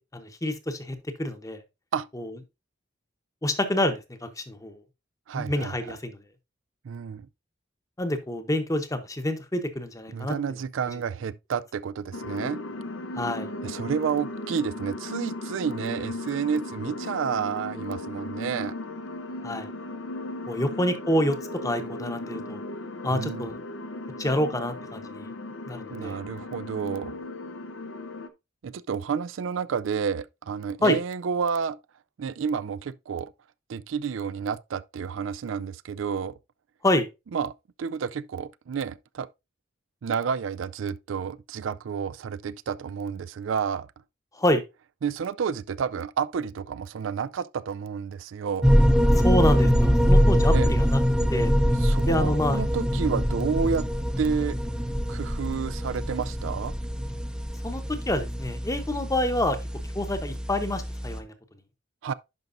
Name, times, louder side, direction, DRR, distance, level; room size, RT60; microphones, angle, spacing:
voice 1, 0.1-1.6 2.1-2.3 3.4-4.8 5.3-6.2 8.0-10.4 13.1-13.5 19.4-19.7 20.5-21.4 21.6-22.6 23.0-23.6 24.2-25.3 25.7-26.2 30.8-31.0 36.8-37.1 44.4-44.6 49.2-51.0 51.3-51.5 52.1-52.6 57.6-57.8 58.1-59.6 59.9-61.3, left 1 dB, 20° left, 0.9 m, -27 dB
voice 2, 5.3-5.7 6.8-7.3 10.1-12.6 13.6-18.7 20.6-20.7 23.1-23.5 25.9-27.2 28.6-31.8 32.2-33.3 33.7-36.3 37.3-37.5 37.8-39.3 40.0-43.9 45.0-48.7 50.5-50.7 51.8-53.9 54.2-54.6 55.1-56.7 62.0-62.1, right 6 dB, 90° right, 0.4 m, -30 dB
sound 1, 12.1-28.3, left 2 dB, 80° left, 0.7 m, -36 dB
sound 2, 48.6-61.2, equal, 5° right, 0.6 m, -24 dB
10.5 x 5.3 x 2.6 m
head